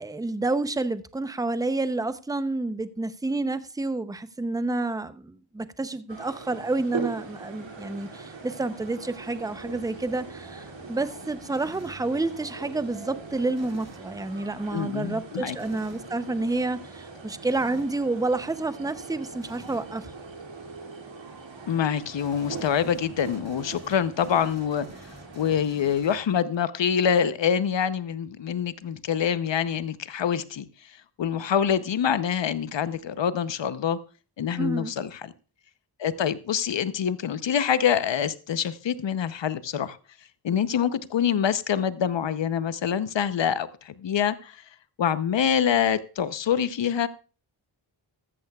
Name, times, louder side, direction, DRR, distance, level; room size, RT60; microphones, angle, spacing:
voice 1, 0.0-20.1 34.6-34.9, right 2 dB, 10° right, 0.6 m, -29 dB
sound 1, 6.1-25.5, right 4 dB, 75° right, 2.5 m, -41 dB
sound 2, 11.5-12.1 13.5-14.1 15.6-16.1 17.5-18.0 19.4-19.9 22.2-26.5, right 2 dB, 35° right, 2.0 m, -49 dB
voice 2, 14.7-15.6 21.7-24.9 25.4-30.7 31.2-34.0 34.4-35.3 36.0-40.0 40.4-44.6 45.0-47.1, left 8 dB, 70° left, 0.8 m, -25 dB
14.5 x 13.0 x 2.3 m
wide cardioid pair, 85°, 46 cm